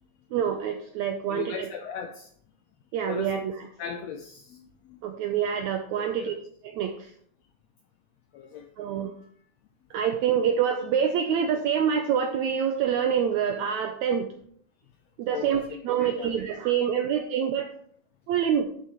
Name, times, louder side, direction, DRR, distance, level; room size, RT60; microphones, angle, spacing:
voice 1, 0.3-1.7 2.9-3.7 5.0-6.4 6.6-7.1 8.8-9.1 9.9-14.3 15.2-17.7 18.3-18.7, right 8 dB, 75° right, 5 dB, 1.8 m, -26 dB
voice 2, 1.3-2.3 3.0-3.4 3.8-5.0 6.0-6.3 8.3-8.7 15.3-16.3, left 7 dB, 90° left, 5 dB, 1.5 m, -38 dB
11.5 x 7.3 x 3.1 m, 0.62 s
omnidirectional pair, 3.9 m